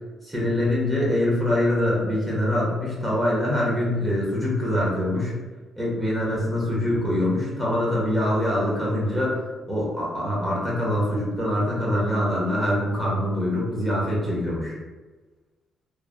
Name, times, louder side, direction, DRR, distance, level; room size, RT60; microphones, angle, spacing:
voice 1, 0.2-5.3 5.8-9.4 9.7-14.8, left 1 dB, 10° right, -6 dB, 1.1 m, -24 dB
3.1 x 2.2 x 2.5 m, 1.3 s
cardioid pair, 90°, 0 cm